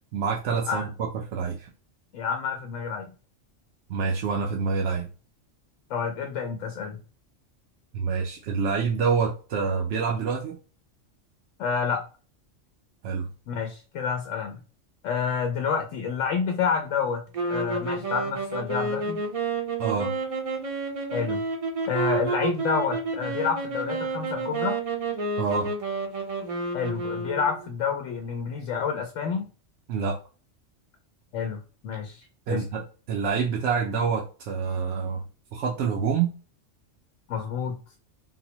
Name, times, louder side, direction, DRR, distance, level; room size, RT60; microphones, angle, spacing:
voice 1, 0.1-1.7 3.9-5.1 7.9-10.6 13.0-13.3 19.8-20.1 25.4-25.7 29.9-30.2 32.5-35.2 35.5-36.3, right 5 dB, 70° right, 0 dB, 0.8 m, -27 dB
voice 2, 2.1-3.1 5.9-7.0 11.6-12.0 13.5-14.6 15.0-17.2 17.5-19.2 21.1-21.4 21.9-24.8 26.7-29.5 31.3-32.6 37.3-37.8, left 6 dB, 80° left, 3 dB, 1.0 m, -29 dB
sound 1, 17.3-27.7, right 3 dB, 40° right, 0.5 m, -30 dB
3.9 x 2.1 x 2.9 m, 0.36 s
omnidirectional pair, 1.3 m